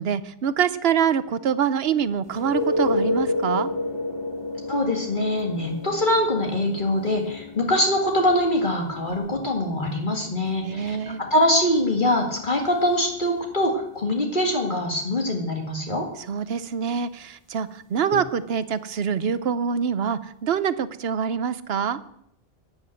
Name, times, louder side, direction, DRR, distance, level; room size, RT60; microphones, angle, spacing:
voice 1, 0.0-3.7 10.6-11.2 16.2-22.0, right 7 dB, 75° right, 15 dB, 1.0 m, -25 dB
sound 1, 2.3-13.9 18.1-18.2, left 2 dB, 25° left, 1.1 m, -31 dB
voice 2, 4.7-16.1, left 1 dB, 50° left, 1 dB, 2.2 m, -23 dB
12.5 x 9.3 x 7.8 m, 0.75 s
omnidirectional pair, 1.1 m